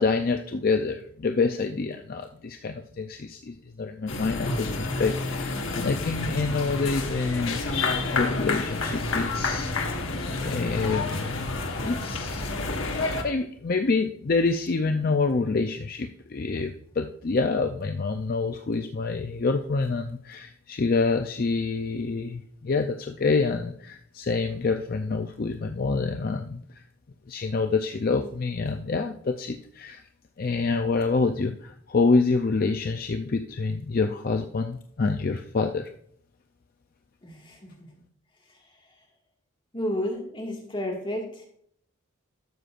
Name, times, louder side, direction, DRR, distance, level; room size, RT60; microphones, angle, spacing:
voice 1, 0.0-10.1 10.4-26.8 27.3-30.0 30.4-35.9, left 4 dB, 40° left, 6 dB, 0.4 m, -27 dB
sound 1, 4.1-13.2, left 3 dB, 65° left, 1.2 m, -29 dB
voice 2, 37.2-37.9 39.7-41.4, left 1 dB, 25° left, 0 dB, 1.7 m, -32 dB
12.5 x 6.7 x 2.5 m, 0.64 s
head